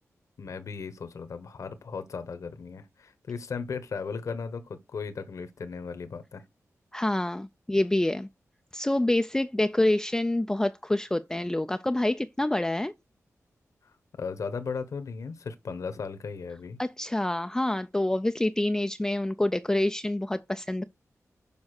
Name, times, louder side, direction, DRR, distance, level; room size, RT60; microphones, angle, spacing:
voice 1, 0.4-6.4 14.2-16.8, left 5 dB, 70° left, 1.1 m, -36 dB
voice 2, 6.9-8.3 8.7-12.9 16.8-20.8, left 1 dB, 10° left, 0.4 m, -27 dB
7.1 x 5.3 x 6.5 m
wide cardioid pair, 130°, 6 cm